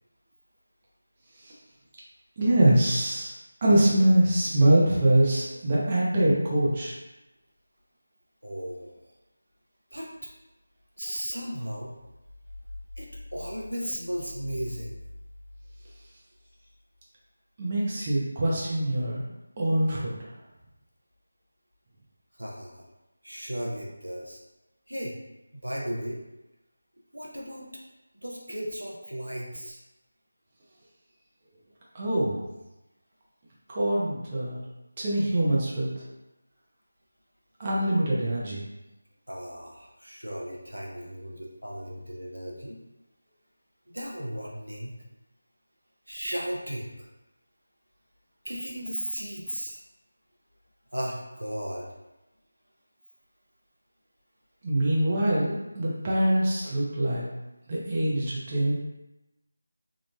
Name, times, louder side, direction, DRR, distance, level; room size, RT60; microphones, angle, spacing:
voice 1, 2.4-3.3 3.6-7.0 17.6-19.2 19.6-20.2 31.9-32.5 33.7-34.6 35.0-35.9 37.6-38.6 54.6-57.2 57.7-58.7, right 1 dB, 25° right, -6 dB, 0.6 m, -24 dB
voice 2, 8.4-9.0 9.9-10.3 11.0-11.9 13.0-15.0 22.3-22.9 23.2-24.4 24.9-25.2 25.5-26.2 27.1-27.7 28.1-29.8 39.3-42.8 43.9-44.9 46.1-47.1 48.4-49.8 50.9-51.9, equal, 90° right, -3 dB, 0.7 m, -35 dB
3.1 x 2.4 x 2.2 m, 0.99 s
figure-of-eight pair, 165°, 0 cm